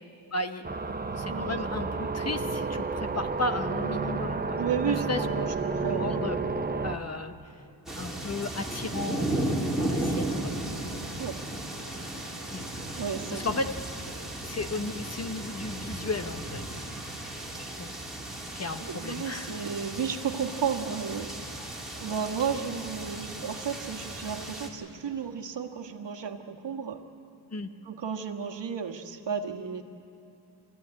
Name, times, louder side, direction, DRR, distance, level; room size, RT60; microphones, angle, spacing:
voice 1, 0.3-0.8 1.1-5.2 5.8-6.4 6.7-7.5 8.0-10.5 12.5-12.6 13.3-13.7 14.4-16.8 17.6-17.9 18.5-19.6 27.5-27.7, left 2 dB, 35° left, 8 dB, 0.8 m, -34 dB
sound 1, 0.6-7.0, right 4 dB, 20° right, 0.7 m, -31 dB
voice 2, 1.3-1.6 4.6-6.1 11.2-11.4 13.0-13.4 18.8-21.6 22.0-27.0 27.8-29.8, right 7 dB, 65° right, 4 dB, 1.5 m, -33 dB
sound 2, 7.9-24.7, right 1 dB, ahead, 2.7 m, -35 dB
25.5 x 15.0 x 9.7 m, 2.6 s
wide cardioid pair, 155°, 47 cm